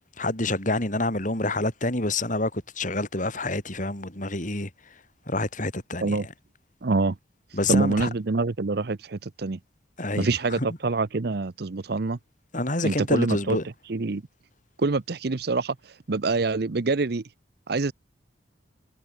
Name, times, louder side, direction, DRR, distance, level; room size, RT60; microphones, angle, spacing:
voice 1, 0.2-5.0 5.3-6.3 7.5-8.1 10.0-10.7 12.5-13.7, left 2 dB, 45° left, 5.3 m, -28 dB
voice 2, 6.8-7.1 7.7-9.6 10.2-12.2 12.8-13.6 13.9-14.2 14.8-15.7 16.1-17.2 17.7-17.9, right 3 dB, 60° right, 0.7 m, -25 dB
head